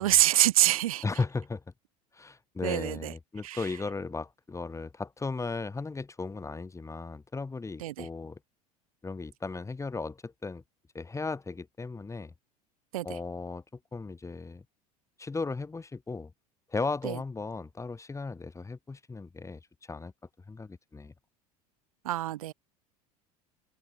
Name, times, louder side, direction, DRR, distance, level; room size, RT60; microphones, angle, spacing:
voice 1, 0.0-1.0 2.6-3.1 3.4-3.6 7.8-8.1 12.9-13.0 17.0-17.2 22.0-22.5, right 14 dB, 65° right, 1.0 m, -25 dB
voice 2, 1.0-1.6 2.1-8.4 9.0-10.6 10.9-12.3 13.0-14.6 15.2-16.3 16.7-20.1 20.5-21.1, left 3 dB, 15° left, 6.2 m, -36 dB
figure-of-eight pair, 75°, 19 cm